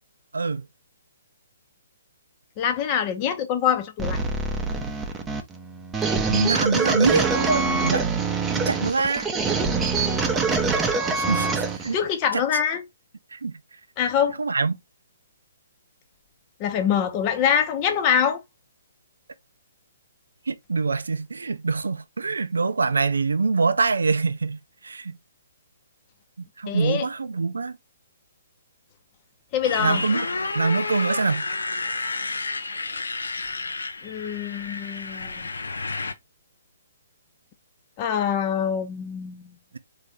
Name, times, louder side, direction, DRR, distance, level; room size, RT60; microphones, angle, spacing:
voice 1, 0.3-0.7 6.3-8.1 8.6-9.3 11.2-12.0 12.3-12.4 13.3-13.5 14.4-14.7 20.5-25.2 26.6-27.8 29.8-30.3 30.5-31.4, right 4 dB, 80° right, 0.4 m, -24 dB
voice 2, 2.6-4.2 11.9-12.8 14.0-14.4 16.6-18.4 26.7-27.1 29.5-30.0 34.0-35.5 38.0-39.5, left 8 dB, 30° left, 0.7 m, -24 dB
sound 1, 4.0-11.9, right 4 dB, 10° right, 0.7 m, -25 dB
Motorcycle, 29.6-36.1, left 3 dB, 85° left, 0.6 m, -31 dB
4.0 x 2.7 x 3.3 m
hypercardioid pair, 135°, 0 cm